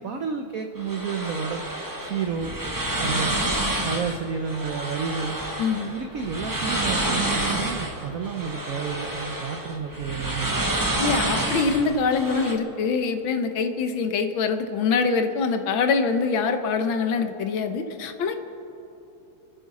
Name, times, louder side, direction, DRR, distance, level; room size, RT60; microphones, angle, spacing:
voice 1, 0.0-1.6 2.0-2.5 3.0-3.4 3.8-5.4 5.8-10.7, right 6 dB, 75° right, 5 dB, 0.8 m, -31 dB
sound 1, 0.8-12.5, right 1 dB, 15° right, 0.8 m, -28 dB
voice 2, 5.6-5.9 11.0-18.4, left 5 dB, 70° left, 7 dB, 1.6 m, -24 dB
28.0 x 9.7 x 4.2 m, 3.0 s
omnidirectional pair, 2.4 m